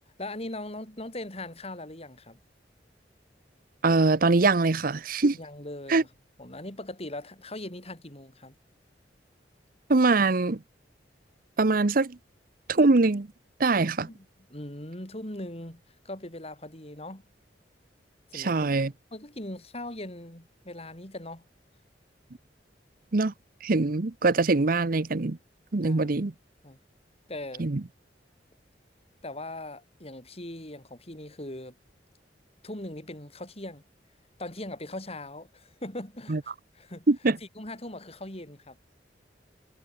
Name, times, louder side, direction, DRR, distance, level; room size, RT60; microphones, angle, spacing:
voice 1, 0.2-2.4 5.4-6.1 6.4-8.6 14.0-17.2 18.3-18.7 19.1-21.4 25.8-26.2 26.6-26.8 27.3-27.7 29.2-31.8 32.6-33.8 34.4-37.1 37.6-38.8, left 1 dB, 35° left, 6.9 m, -40 dB
voice 2, 3.8-5.4 5.9-6.0 9.9-10.6 11.6-12.2 12.7-13.3 13.6-14.1 18.3-18.9 23.1-23.3 23.6-25.4 25.7-26.3 27.6-27.8 36.3-36.4 37.1-37.4, right 3 dB, 55° right, 0.8 m, -23 dB
head